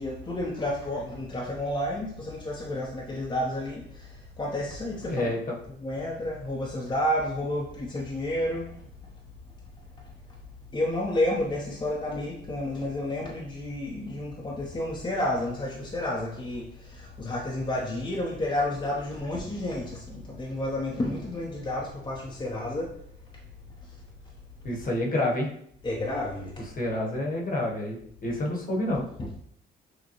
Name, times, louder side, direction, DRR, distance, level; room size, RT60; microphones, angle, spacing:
voice 1, 0.0-4.1 4.4-5.3 5.8-8.7 10.7-22.9 25.8-26.5 29.2-29.4, left 1 dB, 25° left, -3 dB, 0.8 m, -30 dB
voice 2, 5.1-5.5 24.6-25.5 26.8-29.1, left 1 dB, 45° left, -1 dB, 1.2 m, -28 dB
6.4 x 2.2 x 3.0 m, 0.68 s
cardioid pair, 90°, 20 cm